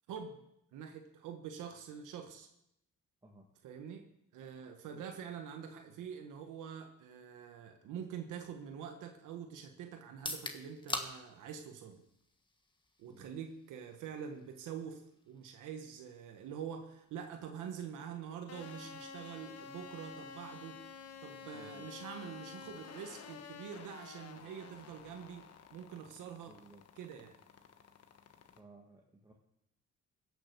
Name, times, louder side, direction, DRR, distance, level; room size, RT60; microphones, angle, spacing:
voice 1, 0.1-0.4 0.7-2.5 3.6-12.0 13.0-20.8 21.2-25.4 25.7-26.6 27.0-27.4, right 7 dB, 90° right, 5 dB, 1.3 m, -46 dB
sound 1, 10.1-23.9, left 2 dB, 15° left, 1.5 m, -50 dB
sound 2, 18.5-28.6, left 6 dB, 55° left, 1.2 m, -51 dB
voice 2, 21.5-21.8 26.5-26.8 28.6-29.3, right 2 dB, 15° right, -2 dB, 1.8 m, -58 dB
16.0 x 6.9 x 6.7 m, 0.79 s
cardioid pair, 90°, 30 cm